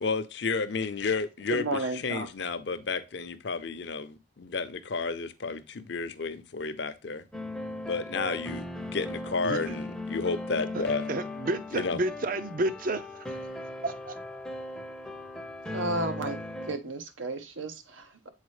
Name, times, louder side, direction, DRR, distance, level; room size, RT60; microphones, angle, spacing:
voice 1, 0.0-7.3 7.9-11.1 11.7-12.0, left 4 dB, 60° left, 0.6 m, -32 dB
voice 2, 1.5-2.3 15.7-16.4 16.7-18.3, right 2 dB, 90° right, 0.9 m, -33 dB
sound 1, 7.3-16.8, left 1 dB, 5° left, 0.5 m, -38 dB
voice 3, 11.1-13.3 13.8-14.4, right 2 dB, 45° right, 0.5 m, -31 dB
7.2 x 4.3 x 3.1 m
head